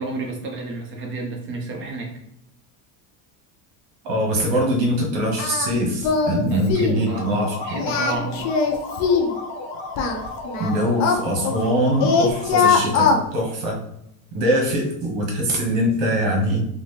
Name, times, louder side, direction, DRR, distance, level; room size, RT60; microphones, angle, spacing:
voice 1, 0.0-2.1 6.5-8.4, right 3 dB, 30° right, 1 dB, 0.6 m, -31 dB
voice 2, 4.0-7.5 10.6-13.8 14.3-16.6, equal, 70° right, -1 dB, 1.4 m, -22 dB
Singing, 5.4-5.7 6.0-6.4 6.7-7.0 7.7-9.3 10.0-11.7 12.0-13.2, left 5 dB, 40° left, 0.5 m, -20 dB
sound 1, 6.9-12.6, left 2 dB, 15° left, 0.8 m, -34 dB
3.9 x 2.0 x 3.3 m, 0.80 s
cardioid pair, 145°, 43 cm